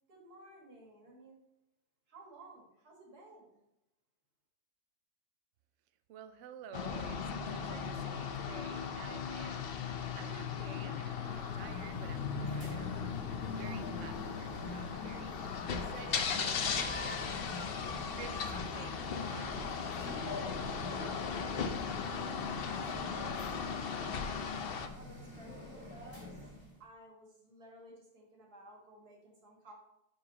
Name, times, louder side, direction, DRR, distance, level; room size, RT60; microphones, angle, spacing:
voice 1, 0.1-1.4 2.1-3.6 24.9-26.5 26.8-29.7, right 1 dB, 90° right, -1 dB, 2.6 m, -55 dB
voice 2, 6.1-9.7 10.0-13.1 13.5-17.8 18.1-19.7 20.0-21.2 21.6-21.7, right 9 dB, 65° right, 10 dB, 0.8 m, -52 dB
sound 1, 6.7-24.9, left 6 dB, 55° left, 0.7 m, -37 dB
sound 2, 11.2-26.8, left 2 dB, 15° left, 2.8 m, -46 dB
10.5 x 4.9 x 2.9 m, 0.87 s
omnidirectional pair, 1.6 m